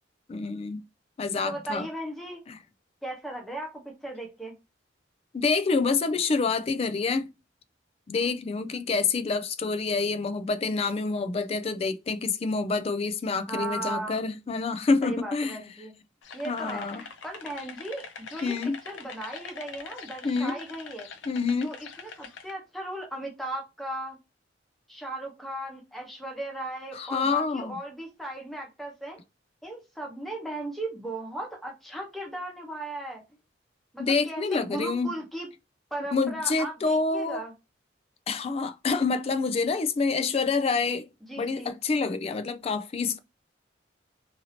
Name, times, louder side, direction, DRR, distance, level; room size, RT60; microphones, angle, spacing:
voice 1, 0.3-0.8 1.2-1.9 2.5-2.6 5.3-7.3 8.1-15.6 16.5-17.0 18.4-18.8 20.2-20.6 21.3-21.7 26.9-27.8 34.0-35.2 36.1-37.4 38.3-41.1 41.4-43.2, left 4 dB, 35° left, 0.3 m, -27 dB
voice 2, 1.4-2.4 3.0-4.5 13.5-14.2 15.0-15.9 16.3-21.1 21.6-24.2 24.9-29.2 29.6-33.2 33.9-35.5 35.9-37.5 41.2-41.7, right 1 dB, ahead, 0.9 m, -37 dB
sound 1, 16.2-22.5, left 5 dB, 85° left, 0.5 m, -44 dB
2.7 x 2.7 x 2.8 m
head